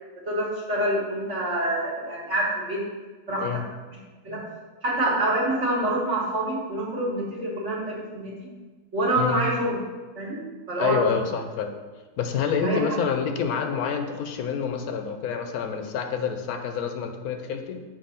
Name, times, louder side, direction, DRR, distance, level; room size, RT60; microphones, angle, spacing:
voice 1, 0.2-2.8 3.3-3.4 4.2-4.4 4.8-8.3 8.9-9.8 10.2-10.4 10.7-11.1 12.6-12.8, right 1 dB, 50° right, -7 dB, 1.6 m, -26 dB
voice 2, 10.8-11.7 12.2-17.8, left 6 dB, 75° left, 6 dB, 1.1 m, -27 dB
7.2 x 2.6 x 5.5 m, 1.3 s
omnidirectional pair, 1.6 m